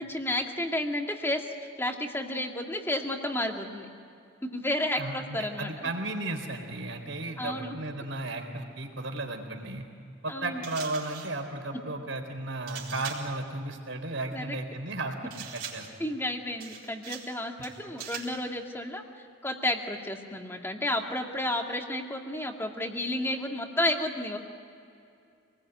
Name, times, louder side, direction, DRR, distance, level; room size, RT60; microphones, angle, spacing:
voice 1, 0.0-1.5 1.8-3.9 4.5-5.7 7.4-7.7 10.3-10.6 14.3-14.6 16.0-19.0 19.4-24.4, left 1 dB, 10° left, 2 dB, 2.2 m, -31 dB
voice 2, 5.0-9.8 10.2-15.9, right 2 dB, 80° right, 4 dB, 4.0 m, -34 dB
sound 1, 10.6-11.4 12.7-13.4 15.3-16.0 16.6-17.4 17.6-18.4, right 7 dB, 50° right, 4.3 m, -41 dB
27.5 x 20.0 x 9.2 m, 2.6 s
head